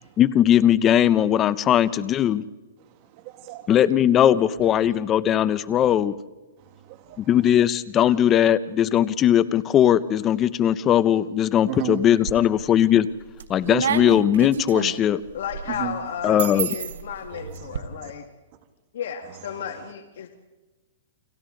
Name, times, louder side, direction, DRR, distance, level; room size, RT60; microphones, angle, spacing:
voice 1, 0.2-2.4 3.7-6.1 7.2-13.1 13.5-15.2 16.2-16.7, left 10 dB, 20° left, 16 dB, 0.6 m, -19 dB
voice 2, 2.8-3.7 4.8-4.9 6.6-7.4 8.0-8.1 11.7-12.0 13.5-13.7 15.7-16.0 17.3-18.1 19.2-19.9, right 11 dB, 40° right, 8 dB, 1.8 m, -36 dB
sound 1, 12.0-12.7 13.2-17.8, right 8 dB, 80° right, 1.2 m, -30 dB
voice 3, 15.3-18.3 18.9-20.3, left 8 dB, 70° left, 4 dB, 1.8 m, -33 dB
30.0 x 23.0 x 3.9 m, 1.2 s
hypercardioid pair, 155°, 0 cm